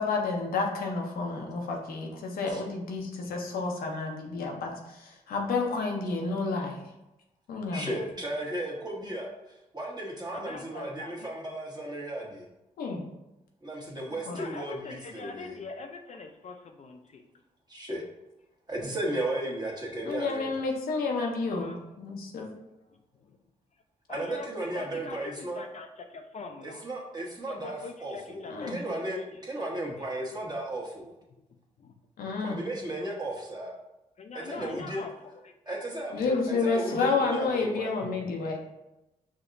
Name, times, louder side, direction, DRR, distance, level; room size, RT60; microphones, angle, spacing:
voice 1, 0.0-6.8 7.5-7.9 12.8-13.0 14.3-14.4 20.0-22.5 28.5-28.8 32.2-32.6 36.1-38.6, left 4 dB, 85° left, 1 dB, 0.7 m, -30 dB
voice 2, 7.7-12.5 13.6-15.6 17.7-18.0 18.7-20.5 24.1-25.6 26.6-31.1 32.4-33.7 34.3-35.0 35.7-37.9, right 1 dB, 25° right, -2 dB, 1.2 m, -35 dB
voice 3, 10.3-11.3 14.3-17.2 21.5-21.9 22.5-22.6 24.1-26.8 27.5-28.8 29.1-30.2 31.5-31.9 34.2-35.8 36.2-36.4 38.0-38.3, left 4 dB, 50° left, 4 dB, 0.4 m, -43 dB
5.1 x 2.8 x 2.5 m, 0.93 s
supercardioid pair, 55°, 15 cm